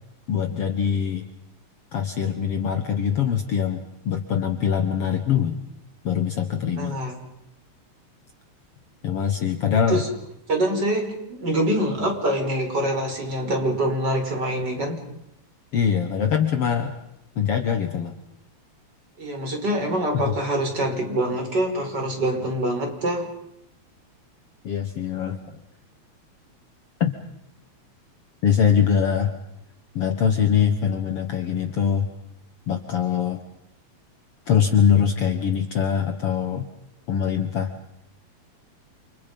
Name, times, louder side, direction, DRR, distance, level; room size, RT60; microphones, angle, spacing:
voice 1, 0.3-1.3 1.9-5.6 6.0-7.0 9.0-10.0 15.7-16.9 17.4-18.2 20.3-20.4 24.6-25.6 27.0-27.1 28.4-29.3 30.0-32.1 32.7-33.4 34.5-36.7 37.1-37.7, left 8 dB, 55° left, 7 dB, 2.1 m, -23 dB
voice 2, 6.7-7.2 9.9-10.1 10.5-15.0 19.2-23.3, right 1 dB, 35° right, 3 dB, 5.7 m, -25 dB
29.5 x 29.5 x 5.4 m, 0.79 s
omnidirectional pair, 3.4 m